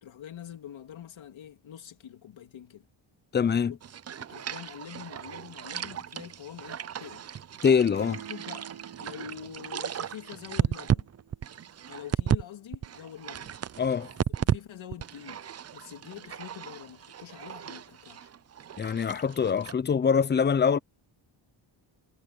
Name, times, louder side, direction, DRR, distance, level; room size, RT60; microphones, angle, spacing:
voice 1, 0.0-2.9 3.7-3.8 4.2-7.3 8.3-8.7 9.0-11.1 11.9-13.6 14.4-18.3, left 10 dB, 65° left, 3.0 m, -45 dB
voice 2, 3.3-3.7 7.6-8.2 13.8-14.1 18.8-20.8, left 6 dB, 25° left, 0.4 m, -24 dB
sound 1, 3.8-12.4 12.7-14.6 14.9-19.7, right 9 dB, 35° right, 0.4 m, -34 dB
sound 2, 7.9-11.7, right 9 dB, 65° right, 4.3 m, -48 dB
wide cardioid pair, 145°, 49 cm